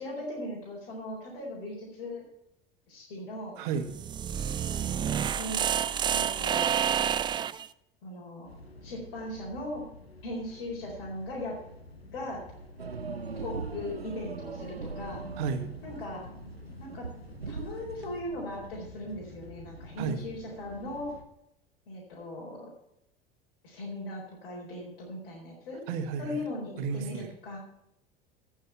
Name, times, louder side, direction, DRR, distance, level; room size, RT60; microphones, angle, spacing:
voice 1, 0.0-2.2 2.9-3.5 4.7-5.6 6.1-6.7 8.0-8.5 8.8-9.8 10.2-11.6 12.1-12.4 13.4-15.2 15.8-16.2 16.8-17.1 17.5-21.1 21.9-22.7 23.6-25.8 26.2-27.6, left 1 dB, 60° left, -4 dB, 4.3 m, -38 dB
voice 2, 3.6-4.0 15.4-15.7 20.0-20.2 25.9-26.4 26.8-27.3, right 6 dB, 55° right, 8 dB, 1.7 m, -32 dB
sound 1, 3.8-7.7, right 9 dB, 15° right, 0.3 m, -29 dB
sound 2, 8.4-21.2, left 1 dB, 85° left, 1.4 m, -49 dB
sound 3, 12.8-18.2, right 4 dB, 90° right, 0.6 m, -40 dB
15.0 x 6.5 x 5.7 m, 0.81 s
figure-of-eight pair, 75°, 30 cm